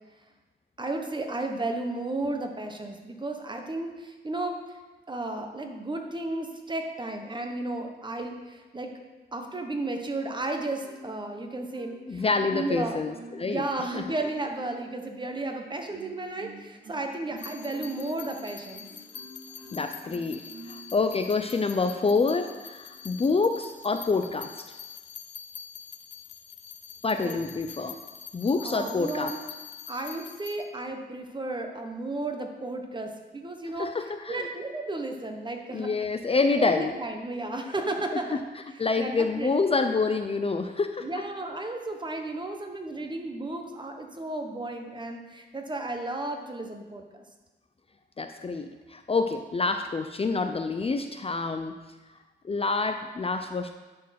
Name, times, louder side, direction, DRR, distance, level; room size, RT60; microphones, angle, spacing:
voice 1, 0.8-4.8 5.1-8.9 9.3-13.0 13.5-18.9 27.2-27.3 28.6-29.4 29.9-33.9 34.3-35.9 36.6-38.4 39.0-39.5 41.0-47.2, right 2 dB, 25° right, 4 dB, 1.1 m, -33 dB
Marimba xylophone, 10.3-11.3 11.7-13.6 14.0-14.9 15.5-20.9 21.4-22.3 22.8-23.1, right 2 dB, 70° right, 2.5 m, -47 dB
voice 2, 12.1-13.6 13.9-14.0 19.7-24.5 27.0-28.0 28.3-29.3 33.8-34.5 35.7-36.9 38.1-38.2 38.8-41.1 48.2-51.7 52.4-53.7, left 4 dB, 30° left, 7 dB, 0.5 m, -27 dB
sound 1, 17.4-30.6, left 8 dB, 80° left, 0.8 m, -45 dB
10.5 x 4.5 x 5.8 m, 1.2 s
wide cardioid pair, 105°, 19 cm